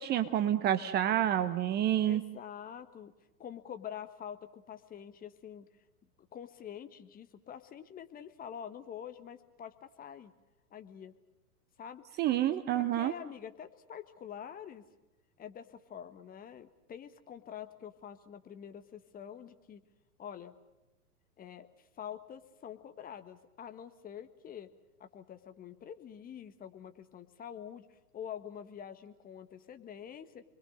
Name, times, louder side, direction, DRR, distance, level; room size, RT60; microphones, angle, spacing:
voice 1, 0.0-2.2 12.2-13.1, right 11 dB, 20° right, 10 dB, 0.9 m, -28 dB
voice 2, 2.1-3.1 3.4-5.6 6.3-10.3 10.7-11.1 11.8-12.4 12.7-14.8 15.4-19.8 20.2-20.5 21.4-24.7 25.0-30.4, left 9 dB, 20° left, 8 dB, 1.7 m, -46 dB
30.0 x 22.0 x 6.6 m, 0.97 s
figure-of-eight pair, 110°, 48 cm